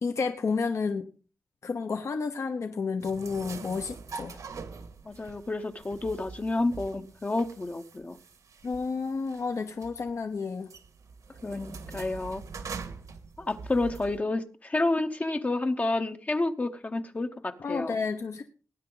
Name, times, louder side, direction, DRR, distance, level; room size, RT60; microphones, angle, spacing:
voice 1, 0.0-1.1 1.6-4.4 8.6-10.7 17.6-18.4, left 4 dB, 55° left, 6 dB, 1.0 m, -31 dB
sound 1, 3.0-14.2, right 5 dB, 75° right, 1.7 m, -44 dB
voice 2, 5.0-8.2 11.4-12.4 13.4-18.0, left 2 dB, 25° left, 7 dB, 0.9 m, -30 dB
19.0 x 9.7 x 3.9 m, 0.38 s
wide cardioid pair, 145°, 6 cm